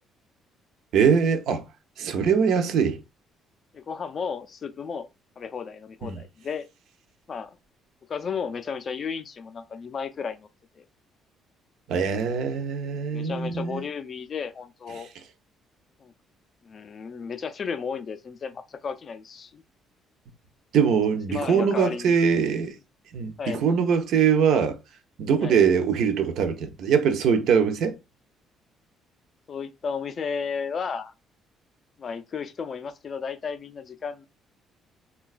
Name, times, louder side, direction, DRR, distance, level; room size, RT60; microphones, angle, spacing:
voice 1, 0.9-1.6 2.0-3.0 6.0-6.2 11.9-13.8 20.7-22.7 23.1-24.8 25.2-27.9, right 6 dB, 65° right, 0.5 m, -22 dB
voice 2, 3.7-5.1 5.4-6.7 7.3-7.6 8.1-10.5 10.8-10.9 13.1-15.1 16.0-16.1 16.6-19.6 21.3-22.2 23.4-23.6 25.4-25.6 29.5-31.1 32.0-34.3, left 6 dB, 35° left, 0.3 m, -33 dB
3.9 x 2.2 x 2.3 m
cardioid pair, 150°, 0 cm